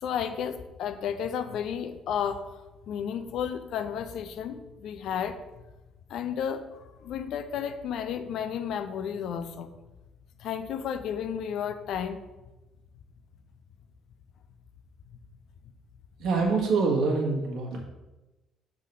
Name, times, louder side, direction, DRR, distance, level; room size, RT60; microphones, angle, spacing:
voice 1, 0.0-2.5 2.9-5.4 6.1-9.7 10.4-12.2, left 8 dB, 60° left, 9 dB, 0.5 m, -32 dB
voice 2, 16.2-17.8, right 4 dB, 60° right, -1 dB, 1.6 m, -25 dB
6.4 x 3.8 x 5.5 m, 1.1 s
figure-of-eight pair, 45°, 0 cm